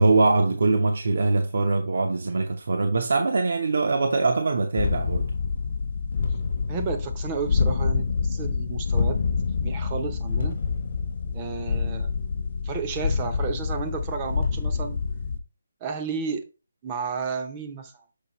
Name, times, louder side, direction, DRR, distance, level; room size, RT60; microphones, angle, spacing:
voice 1, 0.0-5.3, right 3 dB, 55° right, 0.7 m, -22 dB
sound 1, 4.8-15.4, left 5 dB, 40° left, 0.7 m, -27 dB
voice 2, 6.7-9.2 9.6-10.6 11.3-12.1 12.6-15.0 15.8-16.4 16.8-18.0, right 5 dB, 15° right, 0.6 m, -32 dB
6.8 x 4.8 x 3.0 m
hypercardioid pair, 175°, 0 cm